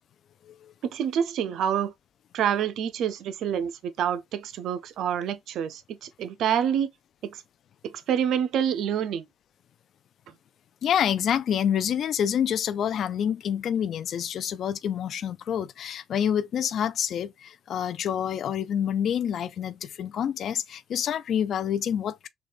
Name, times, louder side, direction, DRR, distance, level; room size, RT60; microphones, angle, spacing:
voice 1, 0.9-1.9 2.3-6.9 7.2-7.4 7.8-9.3, right 9 dB, 80° right, 0.5 m, -27 dB
voice 2, 10.8-22.3, left 9 dB, 65° left, 0.4 m, -27 dB
4.0 x 2.3 x 3.4 m
cardioid pair, 90°, 0 cm